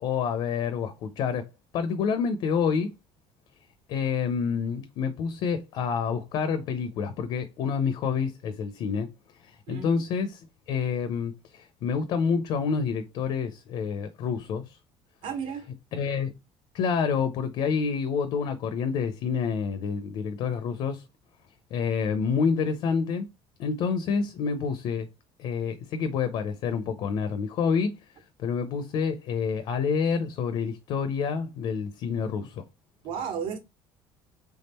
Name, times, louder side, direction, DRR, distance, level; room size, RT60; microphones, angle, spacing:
voice 1, 0.0-2.9 3.9-9.1 9.3-14.8 15.9-16.3 16.7-21.0 21.7-23.3 23.6-25.1 25.4-28.0 28.4-32.6, left 6 dB, 55° left, 0.6 m, -28 dB
voice 2, 9.7-10.0 15.2-15.7 33.0-33.6, right 7 dB, 60° right, 1.3 m, -33 dB
3.6 x 3.5 x 4.2 m
cardioid pair, 165°, 10 cm